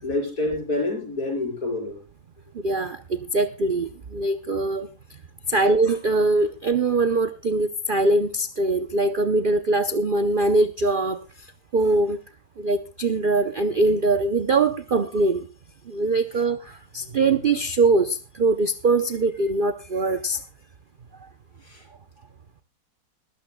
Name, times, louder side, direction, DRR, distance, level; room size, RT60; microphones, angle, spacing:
voice 1, 0.0-2.0 21.7-21.8, left 2 dB, 55° left, 1 dB, 5.9 m, -27 dB
voice 2, 2.5-4.9 5.5-11.5 11.7-12.2 12.6-15.5 15.9-20.4, right 2 dB, 60° right, 9 dB, 0.5 m, -22 dB
21.5 x 13.0 x 2.2 m, 0.29 s
omnidirectional pair, 1.9 m